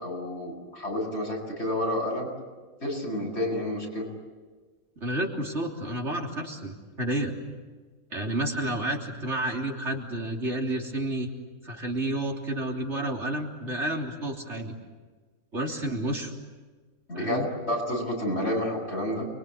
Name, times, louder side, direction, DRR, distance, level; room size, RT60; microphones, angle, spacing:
voice 1, 0.0-2.3 2.8-4.1 17.1-19.3, left 1 dB, 55° left, 0 dB, 8.1 m, -30 dB
voice 2, 5.0-7.3 8.1-11.3 11.6-14.7 15.5-16.3 17.1-17.5, right 1 dB, 55° right, 0 dB, 3.8 m, -30 dB
30.0 x 23.5 x 8.4 m, 1.4 s
omnidirectional pair, 1.4 m